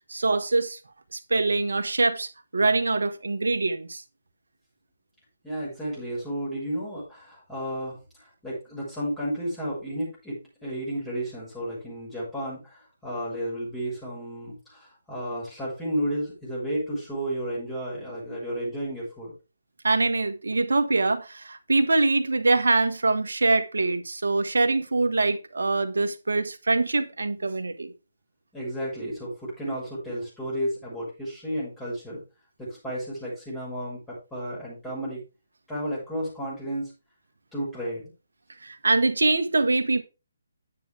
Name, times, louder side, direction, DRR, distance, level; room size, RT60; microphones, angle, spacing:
voice 1, 0.1-0.8 1.1-4.0 19.8-27.9 38.6-40.0, right 3 dB, 75° right, 1.6 m, -24 dB
voice 2, 5.4-19.3 28.5-32.2 32.6-35.2 35.7-36.9 37.5-38.1, equal, 10° left, 6.5 m, -32 dB
9.9 x 9.1 x 3.6 m
figure-of-eight pair, 145°, 0 cm